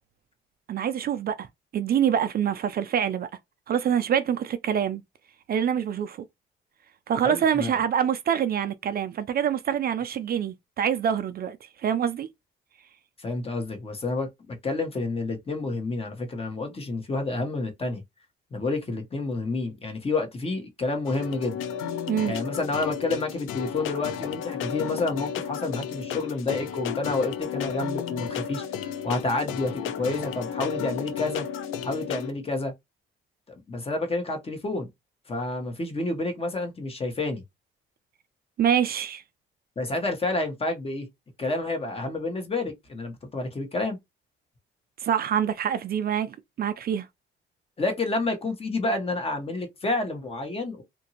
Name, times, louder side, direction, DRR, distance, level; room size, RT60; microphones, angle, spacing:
voice 1, 0.7-1.5 1.7-3.3 3.7-5.0 5.5-6.3 7.1-12.3 22.1-22.3 38.6-39.2 45.0-47.1, right 9 dB, 50° right, 0.4 m, -25 dB
voice 2, 7.2-7.8 13.2-18.0 18.5-21.6 22.3-31.5 31.8-32.7 33.5-34.9 35.3-37.4 39.8-41.1 41.4-44.0 47.8-50.8, left 2 dB, 30° left, 1.0 m, -29 dB
sound 1, 21.1-32.3, left 8 dB, 90° left, 0.5 m, -33 dB
2.9 x 2.5 x 2.8 m
cardioid pair, 90°, 20 cm